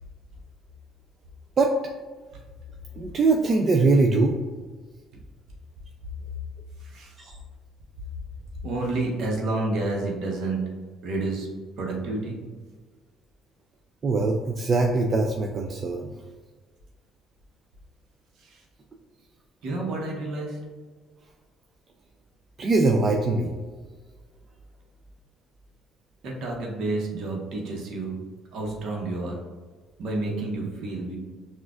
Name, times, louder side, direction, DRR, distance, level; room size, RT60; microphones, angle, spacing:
voice 1, 3.0-4.4 7.2-7.4 14.0-16.1 22.6-23.5, right 3 dB, 45° right, 2 dB, 0.4 m, -22 dB
voice 2, 6.8-7.1 8.6-10.6 11.0-11.5 11.8-12.4 19.6-20.6 26.2-28.2 28.5-29.4 30.0-31.2, right 2 dB, 70° right, -1 dB, 1.0 m, -29 dB
5.8 x 2.4 x 2.4 m, 1.4 s
supercardioid pair, 75°, 0 cm